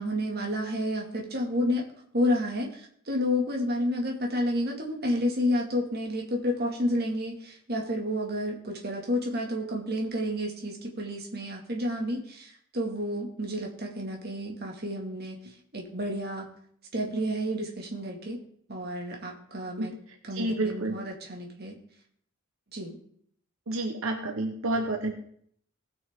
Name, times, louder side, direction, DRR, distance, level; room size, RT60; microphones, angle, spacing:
voice 1, 0.0-1.8 2.1-15.4 15.7-16.5 16.9-18.4 18.7-19.9 20.3-21.8 22.7-23.0, left 1 dB, 50° right, 0 dB, 2.1 m, -30 dB
voice 2, 20.3-21.0 23.7-25.1, right 2 dB, 80° right, 3 dB, 1.1 m, -29 dB
18.5 x 6.3 x 3.7 m, 0.64 s
head